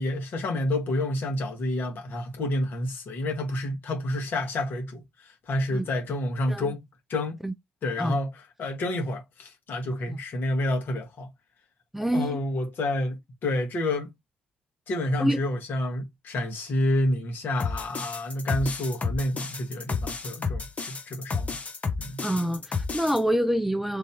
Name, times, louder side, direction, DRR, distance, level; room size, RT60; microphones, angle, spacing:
voice 1, 0.0-6.8 7.1-7.4 7.8-11.3 12.1-14.1 14.9-21.6 22.0-22.2, left 1 dB, 55° left, 1.4 m, -29 dB
voice 2, 11.9-12.4 15.2-15.4 22.2-24.0, equal, 5° right, 0.4 m, -26 dB
sound 1, 17.6-23.2, left 4 dB, 35° left, 0.9 m, -31 dB
3.1 x 2.6 x 3.5 m
figure-of-eight pair, 45°, 4 cm